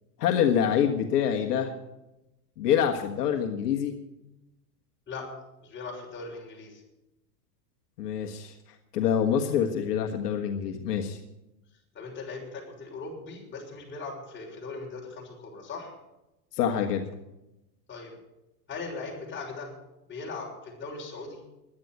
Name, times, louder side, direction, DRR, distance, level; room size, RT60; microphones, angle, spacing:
voice 1, 0.2-1.7 2.6-3.9 8.0-8.5 8.9-11.2 16.5-17.0, left 8 dB, 75° left, 4 dB, 1.6 m, -26 dB
voice 2, 5.1-6.8 11.9-15.9 17.9-18.1 18.7-19.7 20.1-21.4, left 3 dB, 25° left, -2 dB, 6.2 m, -39 dB
11.5 x 9.7 x 9.5 m, 0.94 s
hypercardioid pair, 115°, 47 cm